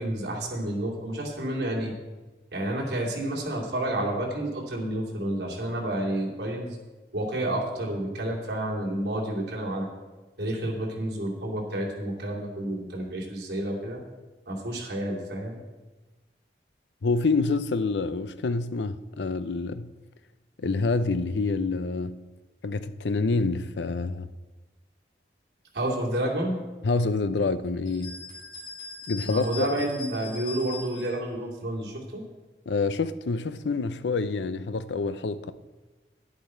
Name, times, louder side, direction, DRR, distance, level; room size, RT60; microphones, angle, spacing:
voice 1, 0.0-1.9 2.5-6.8 7.1-9.9 10.4-14.0 14.5-15.6 25.7-26.6 29.2-32.2, right 1 dB, 70° right, 2.7 m, -30 dB
voice 2, 17.0-19.9 20.6-22.2 22.6-24.3 26.8-28.2 29.1-29.7 32.7-35.5, left 3 dB, 85° left, 0.5 m, -27 dB
sound 1, 27.9-31.2, left 3 dB, 30° left, 3.6 m, -40 dB
11.0 x 10.5 x 4.4 m
head